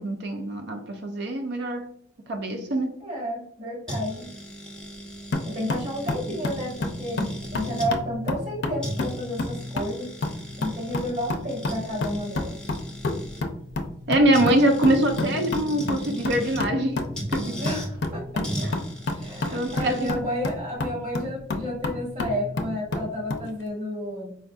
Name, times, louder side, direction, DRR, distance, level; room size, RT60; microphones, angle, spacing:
voice 1, 0.0-1.9 2.3-3.0 14.1-17.0 17.3-17.6 19.5-20.1, right 1 dB, 60° right, 0.5 m, -23 dB
voice 2, 3.0-4.3 5.4-10.1 10.6-12.6 17.6-18.7 19.1-24.4, equal, 40° right, 1.3 m, -31 dB
sound 1, 3.9-7.9 8.5-8.6 8.8-13.4 14.3-16.7 17.1-17.9 18.4-20.1, equal, 5° left, 0.7 m, -37 dB
sound 2, 5.3-23.5, left 2 dB, 60° left, 0.5 m, -31 dB
4.4 x 2.5 x 2.3 m
head